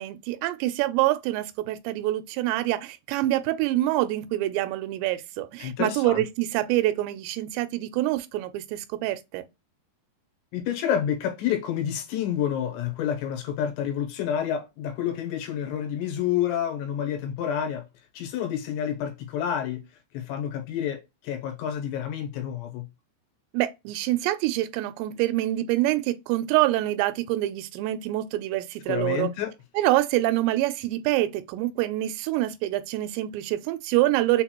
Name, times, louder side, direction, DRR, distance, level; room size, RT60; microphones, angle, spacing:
voice 1, 0.0-9.5 23.5-29.3 29.8-34.4, right 15 dB, 85° right, 2.7 m, -26 dB
voice 2, 5.6-6.2 10.5-17.9 18.1-19.8 20.1-22.9 28.9-29.5, left 9 dB, 85° left, 3.1 m, -29 dB
6.5 x 2.2 x 2.9 m
omnidirectional pair, 5.0 m